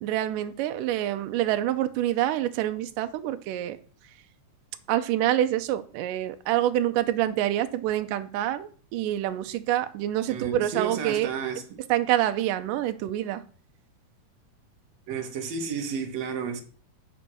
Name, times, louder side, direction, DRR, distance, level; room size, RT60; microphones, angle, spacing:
voice 1, 0.0-3.8 4.9-11.3 11.9-13.4, right 13 dB, 85° right, 2.2 m, -26 dB
voice 2, 10.3-11.6 15.1-16.6, right 6 dB, 60° right, 2.2 m, -31 dB
8.0 x 5.2 x 6.1 m
omnidirectional pair, 3.8 m